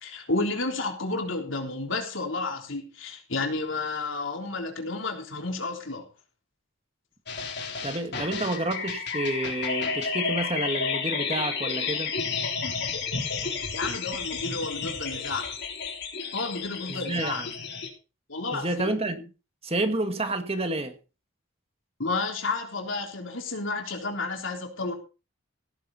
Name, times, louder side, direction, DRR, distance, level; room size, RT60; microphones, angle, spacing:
voice 1, 0.0-6.1 13.7-15.5 16.3-17.4 18.3-18.9 22.0-24.9, left 3 dB, 70° left, 3.6 m, -31 dB
sound 1, 7.3-17.9, left 5 dB, 55° left, 3.5 m, -31 dB
voice 2, 7.8-12.1 16.9-17.5 18.5-19.2 19.6-21.0, right 2 dB, 30° right, 1.7 m, -29 dB
17.0 x 10.0 x 4.1 m
head